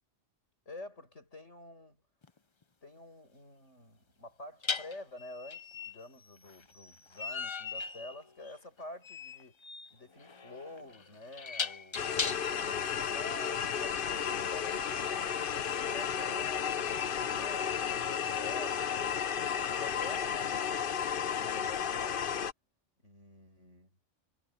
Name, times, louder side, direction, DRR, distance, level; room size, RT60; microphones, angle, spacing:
voice 1, 0.7-2.0 2.8-9.6 9.9-12.1 12.5-17.0 17.2-20.8 21.3-22.3 23.0-24.0, left 2 dB, 80° left, 8.0 m, -49 dB
sound 1, 2.2-2.4 4.6-12.7, left 5 dB, 30° left, 0.6 m, -39 dB
sound 2, 11.9-22.5, left 8 dB, 55° left, 0.9 m, -33 dB
omnidirectional pair, 1.2 m